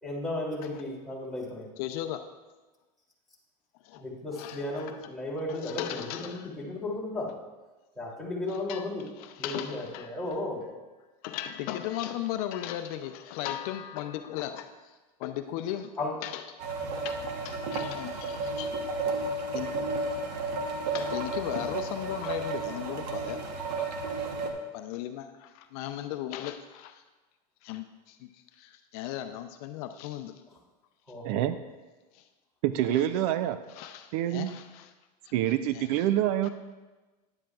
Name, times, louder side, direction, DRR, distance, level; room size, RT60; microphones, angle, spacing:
voice 1, 0.0-1.7 3.9-7.3 7.9-9.1 9.4-10.6 16.0-16.1 31.1-31.5, left 2 dB, ahead, -6 dB, 2.8 m, -34 dB
voice 2, 1.8-2.2 3.8-4.0 4.3-5.0 5.5-6.5 8.7-8.8 9.2-10.2 11.2-14.9 15.2-15.9 16.2-16.4 17.0-17.2 17.4-18.8 19.5-19.7 20.9-23.9 24.2-24.3 24.7-27.0 27.6-30.3 32.1-32.2 32.9-33.0 33.7-34.9 35.2-35.3 35.7-35.8 36.4-36.5, left 12 dB, 65° left, 8 dB, 0.6 m, -37 dB
sound 1, 16.6-24.5, right 3 dB, 85° right, 1.1 m, -32 dB
voice 3, 31.2-31.6 32.6-33.6 34.1-34.5 35.3-36.5, right 12 dB, 65° right, 12 dB, 0.5 m, -26 dB
10.5 x 9.9 x 2.4 m, 1.2 s
supercardioid pair, 125°, 21 cm